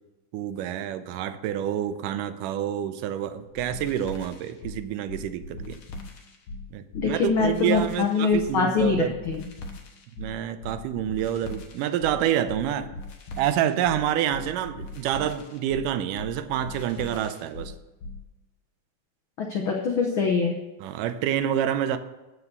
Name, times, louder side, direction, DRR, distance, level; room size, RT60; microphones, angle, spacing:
voice 1, 0.3-5.8 6.7-9.1 10.2-12.9 13.4-17.7 20.8-22.0, right 10 dB, 90° right, 11 dB, 2.2 m, -28 dB
sound 1, 3.5-18.2, left 2 dB, 60° left, 1.6 m, -40 dB
voice 2, 6.9-9.4 19.4-20.6, left 5 dB, 80° left, 0 dB, 1.1 m, -24 dB
13.5 x 4.8 x 6.8 m, 1.1 s
omnidirectional pair, 3.7 m